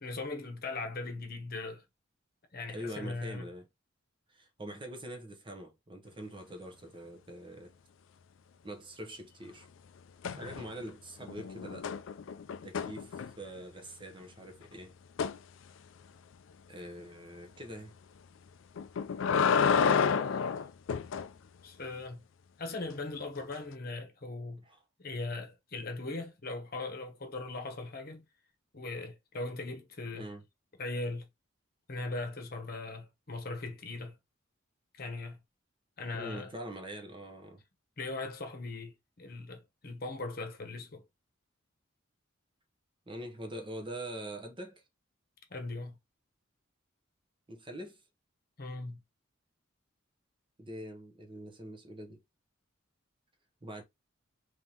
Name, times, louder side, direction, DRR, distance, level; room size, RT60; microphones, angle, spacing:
voice 1, 0.0-1.8 2.5-3.5 20.2-20.6 21.6-22.2 22.6-24.6 25.0-28.2 28.7-30.3 30.8-31.2 31.9-34.1 35.0-35.4 36.0-36.5 38.0-41.0 45.5-45.9 48.6-49.0, left 3 dB, 45° left, 0.9 m, -39 dB
voice 2, 2.7-3.7 4.3-7.7 8.6-9.7 10.3-11.9 12.6-14.9 16.7-17.9 24.6-24.8 30.1-30.4 36.1-37.6 43.1-44.8 47.5-48.0 50.6-52.2 53.6-53.8, right 1 dB, 25° right, 0.8 m, -44 dB
sound 1, 10.2-10.9 11.2-13.6 15.2-15.4 18.8-21.3 23.5-23.6, left 6 dB, 70° left, 0.4 m, -30 dB
3.5 x 3.1 x 2.9 m
head